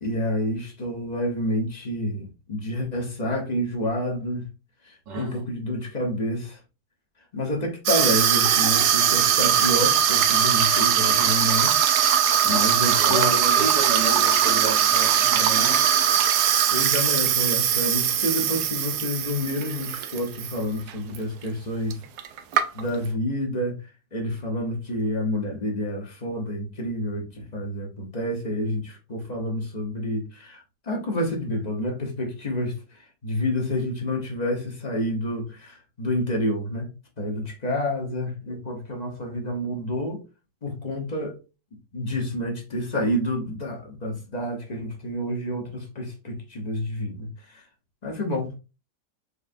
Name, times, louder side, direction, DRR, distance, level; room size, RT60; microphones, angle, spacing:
voice 1, 0.0-4.5 4.8-6.6 7.3-11.8 12.4-13.6 16.6-22.0 22.7-36.9 37.2-40.2 40.6-41.4 41.9-47.6 48.0-48.5, left 1 dB, 30° left, 0.9 m, -29 dB
voice 2, 5.1-5.4 12.4-15.8, right 3 dB, 90° right, 1.9 m, -31 dB
Water tap faucet / Sink (filling or washing), 7.9-20.6 20.9-21.2 21.9-22.0 22.2-23.1, right 9 dB, 75° right, 1.1 m, -21 dB
4.8 x 3.2 x 2.6 m
omnidirectional pair, 1.8 m